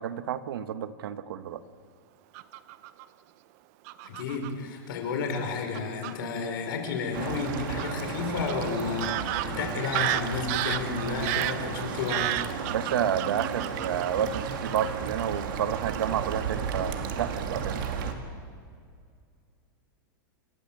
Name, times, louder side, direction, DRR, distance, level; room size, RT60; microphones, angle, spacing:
voice 1, 0.0-1.6 12.7-18.1, right 9 dB, 80° right, 12 dB, 1.3 m, -30 dB
Fowl / Bird vocalization bird call bird song, 2.3-3.0 3.9-4.5 5.3-5.4 5.7-6.1 7.8-7.9 8.5-8.6 9.0-14.9 15.2-15.4 15.7-16.0 16.3-16.6, right 15 dB, 45° right, 0.8 m, -32 dB
voice 2, 4.0-12.3, left 5 dB, 70° left, 3 dB, 5.4 m, -32 dB
sound 1, 7.1-18.1, right 7 dB, 65° right, 2.5 m, -34 dB
28.0 x 14.0 x 7.6 m, 2.2 s
supercardioid pair, 155°, 12 cm